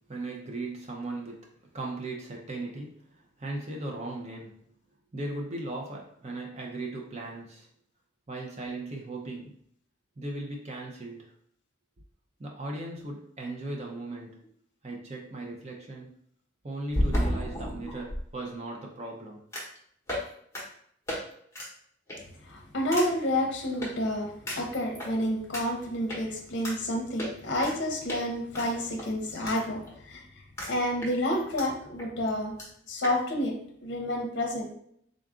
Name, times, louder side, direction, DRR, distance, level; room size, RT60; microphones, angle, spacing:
voice 1, 0.0-4.7 5.1-7.7 8.3-9.6 10.2-11.3 12.4-14.4 14.8-16.1 16.6-19.4, right 2 dB, 35° right, 0 dB, 0.5 m, -37 dB
sound 1, 14.4-14.5 16.9-18.2 19.5-19.8 20.1-20.3 20.5-20.6 21.1-21.2 21.5-21.7 22.1-22.4 22.9-23.1 23.8-23.9 24.5-25.1 25.5-25.6 26.1-26.2 26.6-26.8 27.2-27.8 28.1-28.2 28.5-29.6 29.9-30.0 30.6-30.7 31.0-31.7 32.0-32.1 32.3-32.4 32.6-32.7 33.0-33.2, equal, 15° left, 0.9 m, -32 dB
voice 2, 22.5-30.2 30.7-32.5 32.9-34.7, left 1 dB, 60° left, 2 dB, 0.6 m, -29 dB
3.8 x 2.4 x 3.6 m, 0.66 s
head